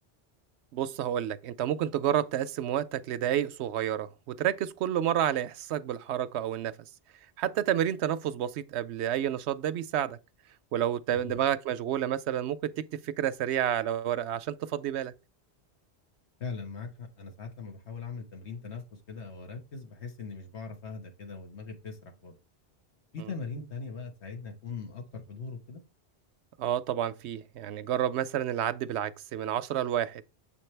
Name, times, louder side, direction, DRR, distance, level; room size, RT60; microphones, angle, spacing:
voice 1, 0.7-6.7 7.4-10.2 10.7-15.1 26.6-30.2, right 10 dB, 85° right, 0.9 m, -30 dB
voice 2, 16.4-22.4 23.1-25.8, left 4 dB, 80° left, 1.7 m, -40 dB
7.4 x 5.2 x 3.3 m
omnidirectional pair, 1.1 m